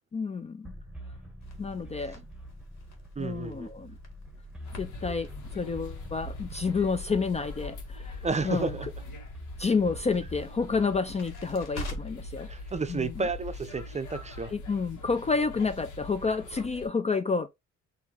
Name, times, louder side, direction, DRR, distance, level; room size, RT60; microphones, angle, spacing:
voice 1, 0.1-0.7 1.6-2.2 3.2-4.0 4.8-8.8 9.6-12.5 12.9-13.3 14.5-17.5, left 4 dB, 20° left, 0.4 m, -29 dB
sound 1, 0.6-10.4, equal, 5° right, 1.3 m, -45 dB
Crackle, 1.4-12.3, left 1 dB, 60° left, 1.8 m, -47 dB
voice 2, 3.2-3.7 8.2-8.9 12.5-14.5, right 4 dB, 20° right, 0.6 m, -31 dB
sound 2, 4.7-16.9, left 2 dB, 80° left, 1.4 m, -43 dB
4.2 x 2.7 x 3.8 m
cardioid pair, 90°, 30 cm